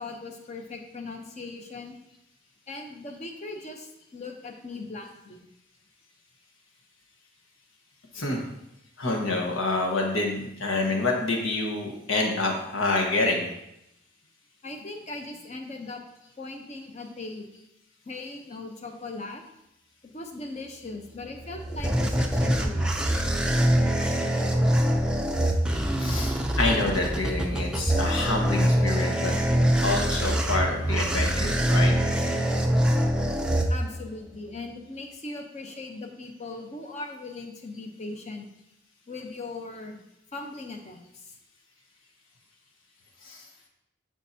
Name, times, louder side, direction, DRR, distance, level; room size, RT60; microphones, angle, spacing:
voice 1, 0.0-2.0 2.7-5.4 14.6-16.0 16.4-17.5 18.1-19.4 20.0-23.0 33.7-38.5 39.1-40.0 40.3-41.4, left 3 dB, 35° left, 4 dB, 0.8 m, -39 dB
voice 2, 9.0-13.5 26.0-29.3 29.8-31.9 43.2-43.4, left 2 dB, 80° left, 1 dB, 1.4 m, -27 dB
sound 1, 21.2-34.2, equal, 5° right, 0.5 m, -24 dB
11.5 x 4.6 x 2.8 m, 0.84 s
head